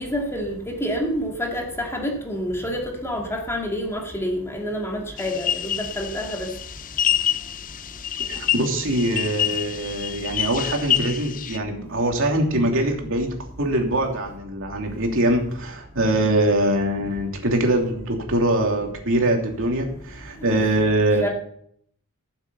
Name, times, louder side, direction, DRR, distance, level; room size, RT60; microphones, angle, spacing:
voice 1, 0.0-6.5 20.4-20.6 21.2-21.3, equal, 10° left, 2.2 m, -28 dB
sound 1, 5.2-11.6, left 10 dB, 40° left, 0.5 m, -27 dB
voice 2, 8.2-13.3 13.6-21.3, right 1 dB, 65° right, 2.9 m, -23 dB
15.0 x 7.5 x 7.0 m
head